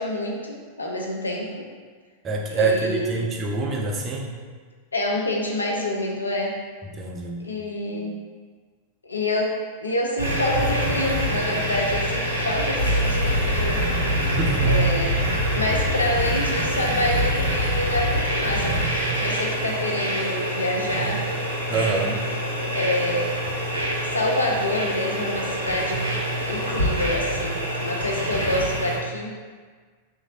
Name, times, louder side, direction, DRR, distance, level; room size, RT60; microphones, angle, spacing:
voice 1, 0.0-1.7 2.5-3.3 4.9-6.6 7.4-8.2 9.0-13.8 14.6-15.2 15.5-18.7 19.2-21.2 21.9-22.1 22.7-23.2 24.1-26.1 26.5-29.3, left 1 dB, 80° left, -1 dB, 0.4 m, -27 dB
voice 2, 2.2-4.4 7.0-7.5 14.1-14.7 21.7-22.2, right 3 dB, 25° right, 0 dB, 0.4 m, -26 dB
sound 1, 10.2-29.0, equal, 85° right, 0.5 m, -25 dB
3.0 x 2.5 x 2.6 m, 1.5 s
figure-of-eight pair, 90°, 0 cm